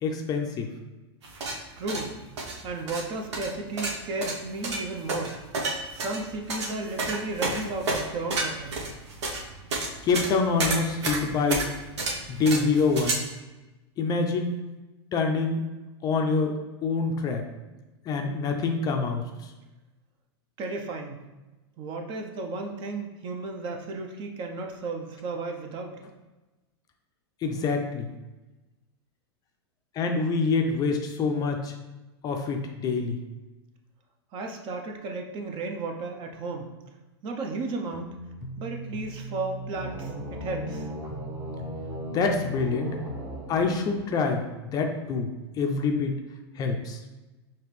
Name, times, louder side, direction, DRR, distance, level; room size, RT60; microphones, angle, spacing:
voice 1, 0.0-0.7 10.0-11.6 12.3-13.2 14.0-14.6 15.1-15.6 16.0-17.4 18.1-19.5 27.4-28.1 29.9-31.7 32.2-33.2 42.1-43.0 43.5-45.3 45.6-46.1 46.6-47.0, left 4 dB, 25° left, 3 dB, 0.4 m, -26 dB
sound 1, 1.2-13.1, right 2 dB, 80° right, 0.9 m, -31 dB
voice 2, 1.8-2.2 2.6-5.4 5.9-8.8 20.6-21.2 21.8-26.0 34.3-36.7 37.2-38.1 38.6-40.1 40.4-40.9, right 3 dB, 35° right, 3 dB, 0.6 m, -34 dB
sound 2, 37.9-43.2, right 2 dB, 5° left, 0.8 m, -40 dB
sound 3, 39.6-44.3, right 1 dB, 20° right, 0.9 m, -38 dB
4.9 x 2.9 x 3.1 m, 1.1 s
hypercardioid pair, 120°, 14 cm